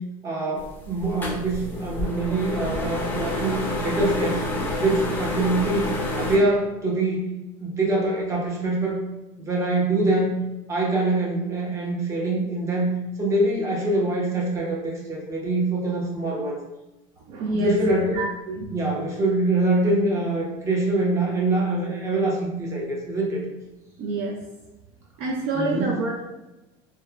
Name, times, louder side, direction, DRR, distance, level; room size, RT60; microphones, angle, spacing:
voice 1, 0.2-4.4 4.8-5.9 6.2-7.3 7.6-9.0 9.4-10.3 10.7-16.6 17.5-18.1 18.7-23.4 25.5-25.9, right 2 dB, 20° right, -2 dB, 0.7 m, -24 dB
sound 1, 0.6-6.4, left 1 dB, 15° left, 0.5 m, -29 dB
voice 2, 17.3-18.7 24.0-24.4 25.2-26.3, right 2 dB, 50° right, -1 dB, 0.4 m, -27 dB
2.9 x 2.1 x 2.3 m, 1.0 s
supercardioid pair, 125°, 13 cm